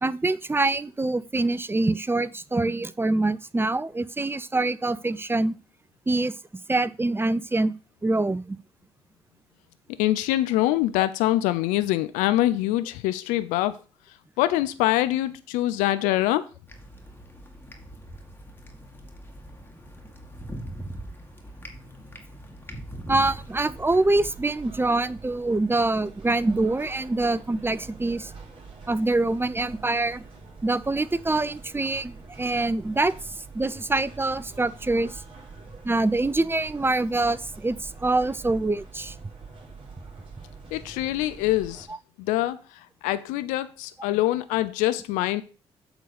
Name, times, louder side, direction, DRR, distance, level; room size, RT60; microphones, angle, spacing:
voice 1, 0.0-5.6 6.1-6.3 6.7-7.7 8.0-8.6 23.1-28.3 28.9-30.2 30.6-35.2 35.8-39.1, right 2 dB, 15° right, 0.6 m, -25 dB
voice 2, 10.0-13.8 14.4-16.4 40.7-41.9 42.2-42.6 43.0-45.4, left 15 dB, 80° left, 0.5 m, -24 dB
sound 1, 16.7-24.3, right 1 dB, 15° left, 2.3 m, -41 dB
sound 2, 23.5-41.9, right 4 dB, 45° right, 4.4 m, -45 dB
8.1 x 4.0 x 6.6 m
hypercardioid pair, 45°, 13 cm